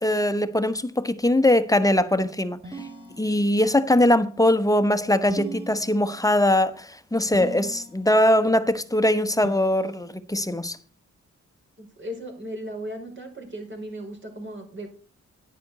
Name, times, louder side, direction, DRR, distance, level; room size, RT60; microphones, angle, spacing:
voice 1, 0.0-2.8 3.2-10.8, left 1 dB, 10° left, 1.1 m, -21 dB
sound 1, 2.6-3.8 5.3-6.4 7.3-8.2 9.4-10.4, right 1 dB, 20° right, 3.3 m, -39 dB
voice 2, 11.8-14.9, right 1 dB, 40° right, 5.0 m, -36 dB
10.5 x 9.4 x 4.2 m
cardioid pair, 70°, 29 cm